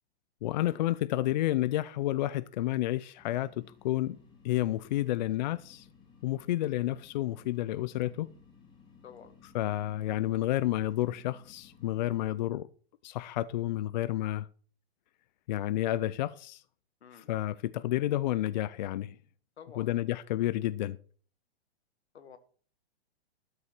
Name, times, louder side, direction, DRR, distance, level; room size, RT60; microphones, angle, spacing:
voice 1, 0.4-4.2 4.4-5.9 6.2-8.3 9.5-12.7 13.0-14.5 15.5-16.6 17.3-19.2 19.8-21.0, left 14 dB, 45° left, 0.5 m, -30 dB
sound 1, 3.2-12.2, left 6 dB, 15° left, 2.7 m, -58 dB
voice 2, 19.6-19.9 22.1-22.4, left 7 dB, 90° left, 2.1 m, -50 dB
13.0 x 7.1 x 6.4 m
hypercardioid pair, 150°, 32 cm